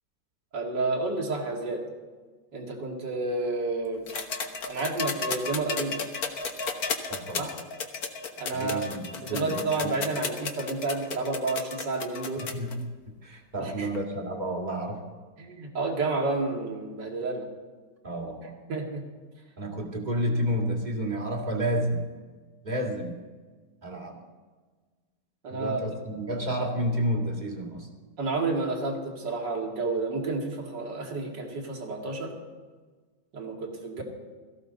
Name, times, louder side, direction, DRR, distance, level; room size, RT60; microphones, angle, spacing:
voice 1, 0.5-1.8 2.5-4.1 4.6-6.0 7.3-7.5 8.4-8.9 9.2-12.4 13.6-13.9 15.4-17.5 18.7-19.0 25.4-25.8 28.2-32.3 33.3-34.0, right 3 dB, 60° right, 0 dB, 2.8 m, -30 dB
sound 1, 4.1-12.7 13.9-14.0, left 5 dB, 55° left, 1.6 m, -33 dB
voice 2, 7.1-7.5 8.5-9.9 12.5-12.9 13.2-15.1 18.0-18.5 19.6-22.1 22.6-23.2 23.8-24.2 25.5-27.9, equal, 25° right, 1 dB, 2.1 m, -30 dB
18.0 x 14.5 x 4.0 m, 1.4 s
omnidirectional pair, 2.1 m